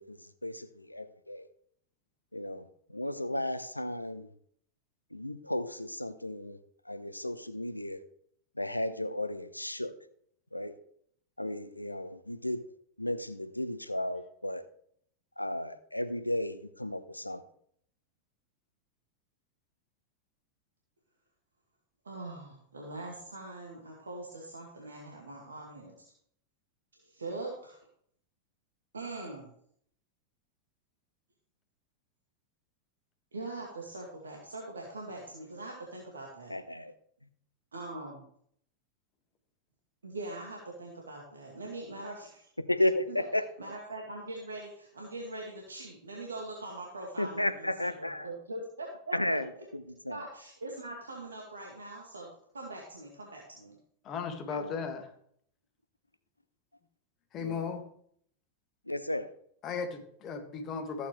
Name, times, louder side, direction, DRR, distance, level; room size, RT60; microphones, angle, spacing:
voice 1, 0.0-1.4 2.3-4.3 5.1-6.6 6.9-8.0 8.6-9.9 10.5-10.7 11.4-12.6 13.0-14.6 15.4-17.4 36.5-36.9 42.6-43.4 47.2-48.3 49.1-50.2 54.5-54.9 57.4-57.8 58.9-59.3, left 1 dB, 85° left, 12 dB, 0.7 m, -34 dB
voice 2, 22.0-25.9 27.0-27.8 28.9-29.5 33.3-36.6 37.7-38.2 40.0-42.5 43.1-43.2 43.6-49.4 50.1-53.7, right 2 dB, 75° right, -2 dB, 2.1 m, -42 dB
voice 3, 54.1-55.1 57.3-57.8 59.6-61.1, left 5 dB, 30° left, 6 dB, 1.9 m, -36 dB
14.5 x 8.4 x 3.3 m, 0.65 s
figure-of-eight pair, 90°, 0 cm